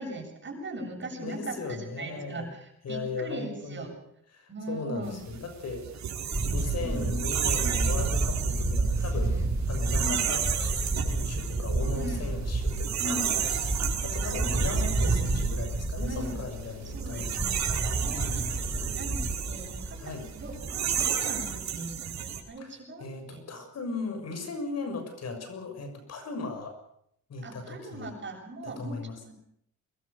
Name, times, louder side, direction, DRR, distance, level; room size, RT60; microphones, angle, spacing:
voice 1, 0.0-3.9 4.5-5.2 6.8-7.1 10.0-10.2 12.0-12.3 13.0-13.4 14.2-14.7 16.1-16.4 16.9-17.6 18.0-23.4 27.4-29.3, right 1 dB, 40° right, 3 dB, 7.5 m, -39 dB
voice 2, 1.0-2.5 2.8-3.9 4.3-5.9 6.5-9.4 9.7-10.4 11.0-17.3 18.1-18.8 20.0-20.3 22.6-26.8 27.3-28.2 28.6-29.2, left 3 dB, 55° left, 6 dB, 6.9 m, -37 dB
sound 1, 5.1-22.4, right 8 dB, 65° right, 4.5 m, -33 dB
Camera, 6.3-21.1, right 2 dB, 10° right, 6.5 m, -30 dB
23.5 x 21.0 x 6.9 m, 0.71 s
cardioid pair, 90°, 30 cm